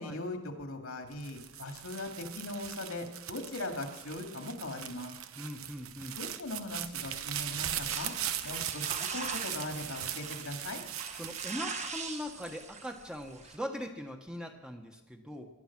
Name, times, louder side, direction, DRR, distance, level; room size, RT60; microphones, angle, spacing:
voice 1, 0.0-5.1 6.2-10.8, left 2 dB, 85° left, 4 dB, 2.4 m, -40 dB
sound 1, 1.1-12.5 13.0-13.6, right 10 dB, 80° right, 0.9 m, -39 dB
voice 2, 5.4-6.1 11.1-15.5, equal, 5° right, 4 dB, 1.2 m, -41 dB
sound 2, 7.9-13.6, right 5 dB, 30° right, 1.4 m, -42 dB
19.5 x 12.0 x 6.0 m, 1.0 s
head